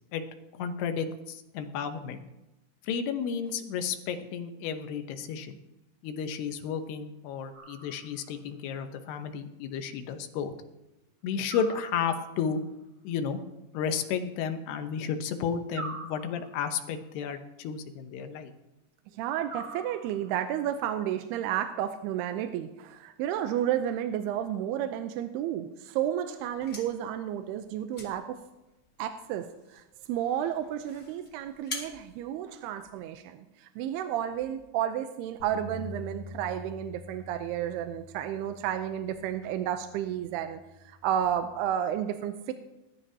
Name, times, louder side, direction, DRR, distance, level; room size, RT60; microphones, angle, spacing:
voice 1, 0.5-2.2 2.8-5.6 6.0-10.5 11.2-12.6 13.0-13.4 13.7-18.5, left 7 dB, 75° left, 7 dB, 2.9 m, -32 dB
sound 1, 7.5-8.4 11.5-12.5 15.7-16.8 19.5-20.5, right 2 dB, 45° right, 3.0 m, -43 dB
voice 2, 19.1-28.4 29.0-42.5, right 10 dB, 80° right, 8 dB, 2.6 m, -32 dB
sound 2, 26.4-33.2, left 3 dB, 25° left, 2.0 m, -46 dB
Bass guitar, 35.4-41.6, left 2 dB, 45° left, 2.4 m, -47 dB
20.0 x 12.5 x 2.8 m, 0.98 s
omnidirectional pair, 4.9 m